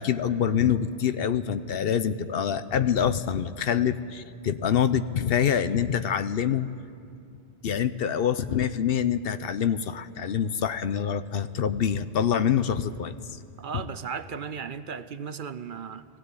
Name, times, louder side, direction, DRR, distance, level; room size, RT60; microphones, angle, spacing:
voice 1, 0.0-6.7 7.6-13.4, left 8 dB, 65° left, 12 dB, 0.9 m, -26 dB
voice 2, 13.6-16.1, right 6 dB, 55° right, 13 dB, 0.8 m, -36 dB
19.5 x 15.5 x 9.7 m, 2.3 s
omnidirectional pair, 1.1 m